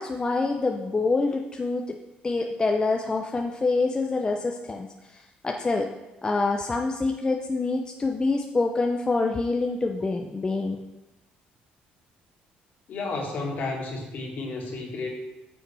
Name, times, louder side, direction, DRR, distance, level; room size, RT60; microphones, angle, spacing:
voice 1, 0.0-2.0 2.2-5.9 6.2-10.8, left 3 dB, 25° left, 2 dB, 0.6 m, -26 dB
voice 2, 12.9-15.1, left 3 dB, 55° left, -1 dB, 2.2 m, -32 dB
9.0 x 6.3 x 3.4 m, 1.0 s
cardioid pair, 90°, 3 cm